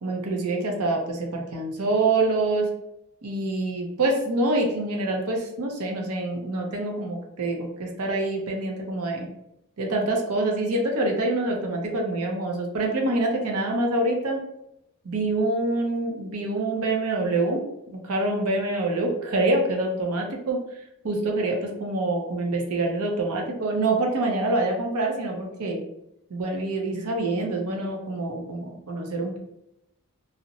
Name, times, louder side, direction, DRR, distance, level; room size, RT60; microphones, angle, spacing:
voice 1, 0.0-2.7 3.2-9.3 9.8-14.4 15.0-20.6 21.0-25.8 26.3-29.4, right 2 dB, 90° right, 1 dB, 0.6 m, -26 dB
2.5 x 2.0 x 2.8 m, 0.82 s
head